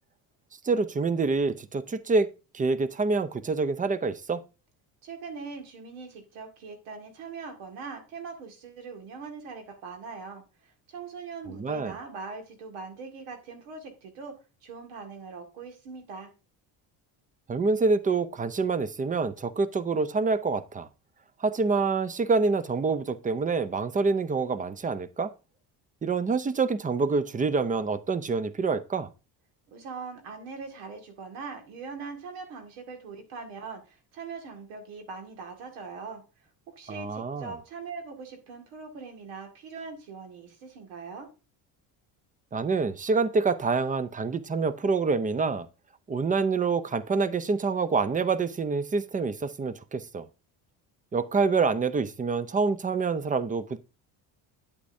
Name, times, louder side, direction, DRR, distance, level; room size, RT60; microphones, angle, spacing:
voice 1, 0.6-2.3 2.5-4.4 11.5-11.9 17.5-20.9 21.4-25.3 26.0-29.1 36.9-37.5 42.5-45.7 46.1-50.3 51.1-53.8, right 4 dB, 15° right, 0.5 m, -26 dB
voice 2, 5.0-16.3 29.7-36.2 36.8-41.3, right 4 dB, 80° right, 2.0 m, -41 dB
8.4 x 8.2 x 2.6 m
supercardioid pair, 80°, 50 cm